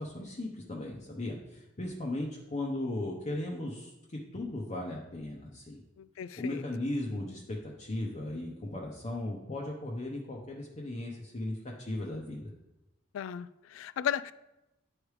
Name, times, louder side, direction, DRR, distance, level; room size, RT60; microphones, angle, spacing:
voice 1, 0.0-5.8 6.4-12.5, left 1 dB, 35° left, 0.8 m, -37 dB
voice 2, 6.0-6.6 13.1-14.3, left 9 dB, 85° left, 0.3 m, -35 dB
9.8 x 3.3 x 4.8 m
head